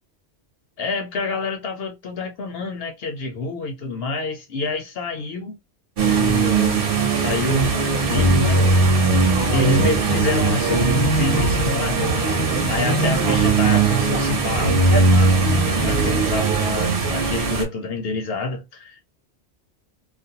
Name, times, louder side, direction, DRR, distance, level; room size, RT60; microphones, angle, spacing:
voice 1, 0.8-5.6 6.0-8.9 9.5-19.0, left 2 dB, 65° left, 0.8 m, -27 dB
sound 1, 6.0-17.6, right 3 dB, 55° right, 0.9 m, -19 dB
2.4 x 2.1 x 2.7 m
omnidirectional pair, 1.2 m